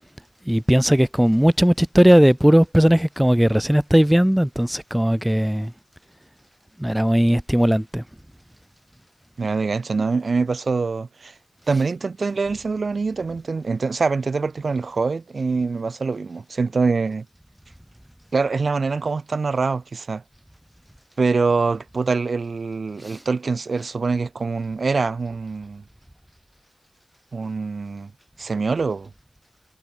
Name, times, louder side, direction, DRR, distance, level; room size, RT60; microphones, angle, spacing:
voice 1, 0.5-5.7 6.8-8.0 11.7-11.8 23.1-23.2, equal, 5° right, 1.0 m, -17 dB
voice 2, 9.4-11.3 11.7-17.2 18.3-20.2 21.2-25.8 27.3-28.1 28.4-29.1, right 4 dB, 65° right, 3.1 m, -24 dB
wide cardioid pair, 65°, 0 cm